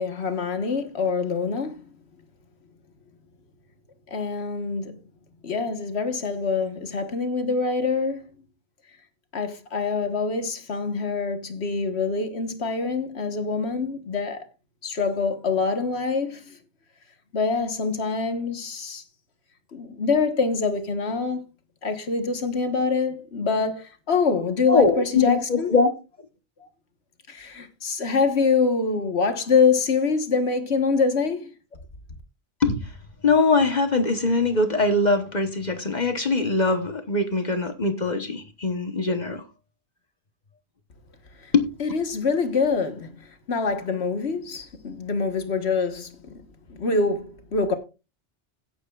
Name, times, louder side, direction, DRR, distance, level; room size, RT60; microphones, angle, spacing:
voice 1, 0.0-1.8 4.1-4.9 5.4-8.2 9.3-14.4 14.8-16.6 17.3-19.0 19.7-21.4 21.8-25.7 27.3-31.5 41.4-41.5 41.8-46.2 46.7-47.7, left 4 dB, 65° left, 1.6 m, -25 dB
voice 2, 24.7-25.9 32.6-32.9 33.2-39.4 41.5-41.6, left 3 dB, 40° left, 1.2 m, -22 dB
16.5 x 8.9 x 2.4 m
omnidirectional pair, 1.2 m